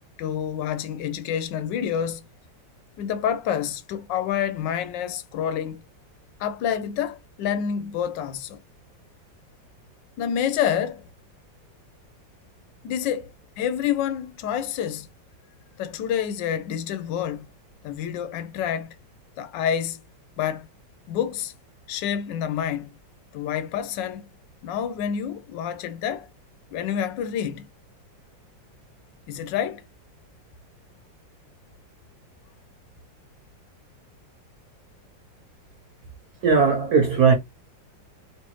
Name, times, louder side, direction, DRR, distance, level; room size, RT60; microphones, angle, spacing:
voice 1, 0.2-2.2 3.0-5.8 6.4-8.6 10.2-11.0 12.8-15.1 15.8-17.5 17.8-19.0 19.4-20.0 20.4-20.7 21.1-21.5 21.9-22.9 23.3-24.3 24.6-26.3 26.7-27.7 29.3-29.8, left 9 dB, 75° left, 1.3 m, -28 dB
voice 2, 36.4-37.3, right 5 dB, 60° right, 1.2 m, -18 dB
3.4 x 3.0 x 3.0 m
omnidirectional pair, 2.0 m